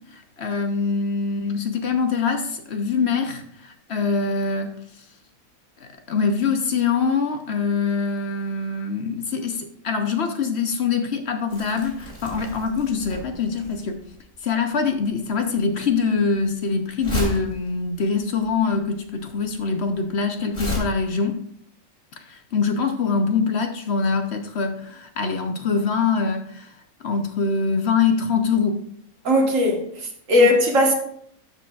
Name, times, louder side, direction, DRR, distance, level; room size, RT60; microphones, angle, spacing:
voice 1, 0.1-4.8 5.8-14.0 14.4-21.4 22.3-26.8 27.0-28.8 30.4-30.5, left 5 dB, 55° left, 0.9 m, -24 dB
Crumpling crinkling, 11.5-20.8, left 1 dB, 40° left, 3.7 m, -34 dB
voice 2, 29.3-30.9, left 1 dB, 60° right, 1.7 m, -18 dB
12.0 x 7.2 x 2.4 m
omnidirectional pair, 1.5 m